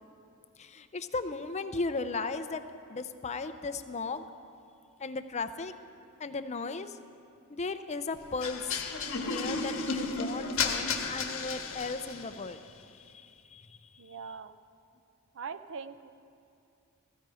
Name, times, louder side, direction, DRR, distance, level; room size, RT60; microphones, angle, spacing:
voice 1, 0.6-2.6 2.9-4.2 5.0-5.7 6.2-7.0 7.5-8.8 9.3-13.8, left 3 dB, 30° left, 10 dB, 0.5 m, -36 dB
sound 1, 8.4-12.3, left 4 dB, 65° left, 1.4 m, -33 dB
voice 2, 14.0-14.6 15.3-16.1, right 5 dB, 60° right, 11 dB, 0.6 m, -41 dB
15.5 x 15.0 x 5.0 m, 2.5 s
head